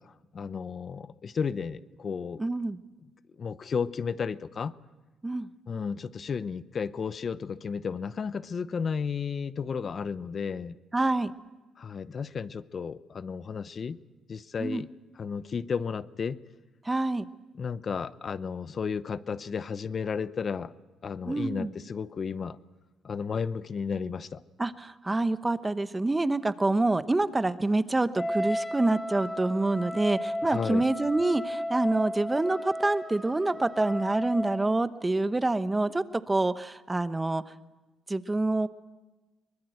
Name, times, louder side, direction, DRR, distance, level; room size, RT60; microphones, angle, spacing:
voice 1, 0.0-2.4 3.4-4.7 5.7-10.8 11.8-14.0 14.3-14.9 15.2-16.4 17.6-20.7 21.0-22.6 23.0-24.4 30.4-30.8, left 6 dB, 45° left, 16 dB, 0.8 m, -33 dB
voice 2, 2.4-2.8 5.2-5.5 10.9-11.3 14.6-14.8 16.8-17.3 21.2-21.7 24.6-37.4 38.1-38.7, right 2 dB, 15° right, 12 dB, 1.0 m, -27 dB
Wind instrument woodwind instrument, 28.2-34.8, left 1 dB, 5° left, 2.5 m, -34 dB
23.5 x 21.0 x 8.0 m, 1.2 s
cardioid pair, 90°, 0 cm